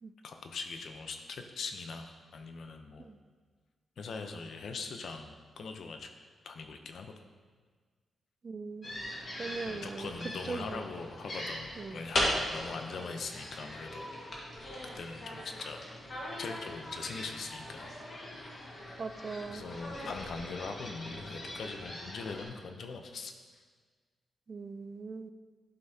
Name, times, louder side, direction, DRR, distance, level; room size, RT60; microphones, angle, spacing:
voice 1, 0.2-3.1 4.0-6.1 6.4-7.1 9.7-14.1 15.0-15.9 16.4-17.9 19.5-23.3, left 4 dB, 65° left, 5 dB, 0.7 m, -41 dB
voice 2, 8.4-8.9 9.4-10.1 10.5-10.9 11.8-12.0 19.0-19.7 24.5-25.3, right 4 dB, 40° right, 10 dB, 0.3 m, -40 dB
sound 1, 8.8-22.5, left 1 dB, 45° left, 1.6 m, -39 dB
11.5 x 5.5 x 2.8 m, 1.5 s
wide cardioid pair, 120°, 0 cm